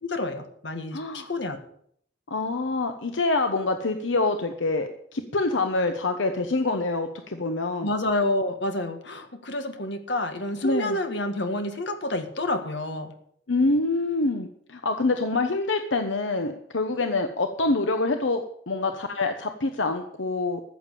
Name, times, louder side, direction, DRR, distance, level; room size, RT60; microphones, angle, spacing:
voice 1, 0.0-1.6 7.8-13.1, left 1 dB, 70° left, 7 dB, 1.8 m, -29 dB
voice 2, 0.9-1.3 2.3-7.9 10.6-11.0 13.5-20.6, left 3 dB, 85° left, 7 dB, 1.0 m, -26 dB
14.5 x 7.3 x 8.5 m, 0.66 s
head